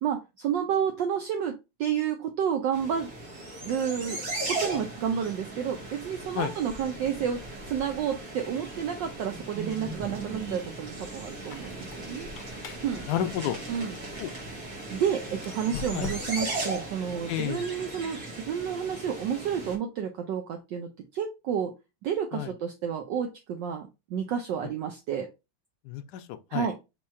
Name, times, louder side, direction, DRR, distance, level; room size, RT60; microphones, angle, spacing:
voice 1, 0.0-3.1 3.6-4.2 4.5-12.3 12.8-13.1 13.7-14.0 14.9-21.7 22.0-25.3 26.5-26.7, right 8 dB, 70° right, 1.1 m, -30 dB
sound 1, 2.7-19.8, right 2 dB, 50° right, 1.4 m, -37 dB
Squeak, 11.3-14.5 15.3-16.6, left 6 dB, 70° left, 1.2 m, -43 dB
voice 2, 13.0-13.6 14.2-14.3 15.9-16.1 17.3-17.6 22.3-22.5 25.8-26.7, left 11 dB, 90° left, 0.9 m, -31 dB
4.5 x 2.4 x 4.2 m
omnidirectional pair, 2.4 m